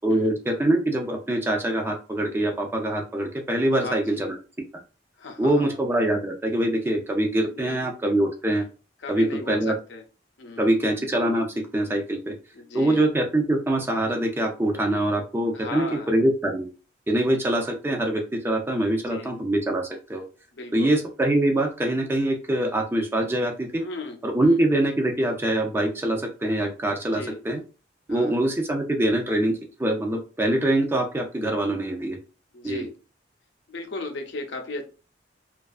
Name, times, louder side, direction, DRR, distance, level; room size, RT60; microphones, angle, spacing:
voice 1, 0.0-4.4 5.4-8.7 9.1-9.7 10.6-11.5 11.7-12.4 12.7-16.7 17.1-20.2 20.7-23.8 24.2-27.6 28.1-32.2 32.6-32.8, right 1 dB, 10° right, 2 dB, 0.4 m, -24 dB
voice 2, 3.8-4.3 5.2-5.8 7.4-8.0 9.0-10.0 10.4-10.9 12.5-13.1 15.5-16.1 18.9-19.3 20.6-20.9 23.8-24.6 27.1-27.4 28.1-28.4 32.5-32.9 33.7-34.8, left 3 dB, 70° left, 4 dB, 0.5 m, -36 dB
2.5 x 2.3 x 2.3 m, 0.34 s
head